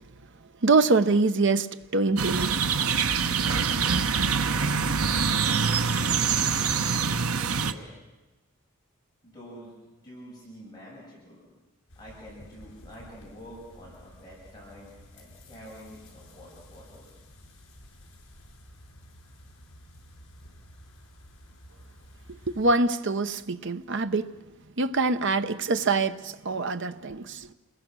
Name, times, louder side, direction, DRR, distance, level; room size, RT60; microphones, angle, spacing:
voice 1, 0.6-1.7 1.9-2.6 22.3-24.4 24.8-27.5, right 3 dB, 55° right, 0.8 m, -24 dB
sound 1, 2.2-7.7, right 5 dB, 85° right, 1.0 m, -25 dB
voice 2, 7.5-7.8 9.2-9.7 10.0-11.5 11.9-17.1, equal, 20° left, 7.0 m, -47 dB
sound 2, 11.9-22.7, equal, 75° left, 5.9 m, -51 dB
28.5 x 21.0 x 6.2 m
head